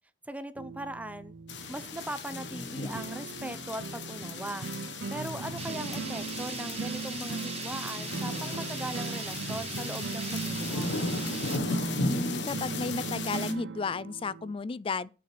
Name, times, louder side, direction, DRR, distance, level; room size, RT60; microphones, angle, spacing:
voice 1, 0.3-1.3 1.7-4.7 5.1-10.9, right 1 dB, 10° right, 0.7 m, -39 dB
sound 1, 0.6-14.5, right 4 dB, 80° right, 0.7 m, -39 dB
sound 2, 1.5-13.5, left 2 dB, 70° left, 1.4 m, -36 dB
sound 3, 5.6-11.6, right 7 dB, 35° right, 1.0 m, -41 dB
voice 2, 12.0-15.1, left 4 dB, 30° left, 0.4 m, -33 dB
8.3 x 5.7 x 6.7 m
head